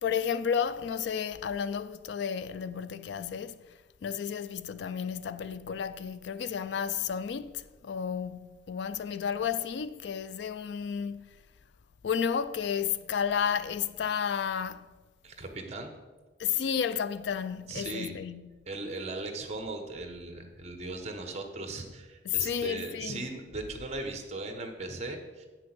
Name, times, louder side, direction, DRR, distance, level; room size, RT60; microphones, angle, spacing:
voice 1, 0.0-3.6 4.0-11.3 12.0-14.9 16.4-18.5 22.3-23.2, left 7 dB, 65° left, 0.3 m, -32 dB
voice 2, 15.2-15.9 17.7-18.2 18.7-25.5, right 2 dB, 35° right, 1.1 m, -38 dB
8.6 x 6.1 x 6.0 m
head